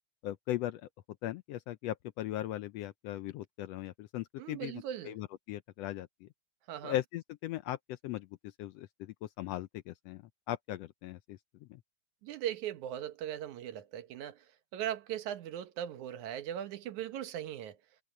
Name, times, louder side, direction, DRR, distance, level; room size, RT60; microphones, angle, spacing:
voice 1, 0.2-0.9 1.2-6.3 6.8-11.8, left 13 dB, 75° left, 1.5 m, -39 dB
voice 2, 4.4-5.1 6.7-7.0 12.2-17.8, right 11 dB, 80° right, 2.5 m, -39 dB
omnidirectional pair, 3.4 m